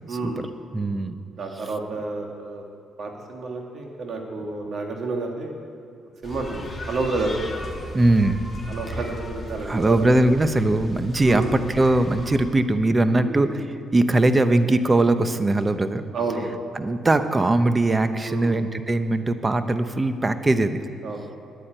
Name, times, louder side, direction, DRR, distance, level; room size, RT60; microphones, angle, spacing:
voice 1, 0.1-0.4 1.4-2.6 3.0-5.5 6.2-7.3 8.7-10.0 10.3-10.5 11.2-11.5 13.2-13.6 16.1-16.6 18.2-18.6 21.0-21.3, right 3 dB, 60° right, 1 dB, 2.3 m, -30 dB
voice 2, 0.7-1.1 7.9-8.4 9.6-13.6 13.9-16.0 16.7-20.8, right 2 dB, 25° right, 10 dB, 0.8 m, -20 dB
sound 1, 6.2-12.4, left 1 dB, 20° left, 2.7 m, -37 dB
10.5 x 9.5 x 9.0 m, 2.4 s
cardioid pair, 90°, 0 cm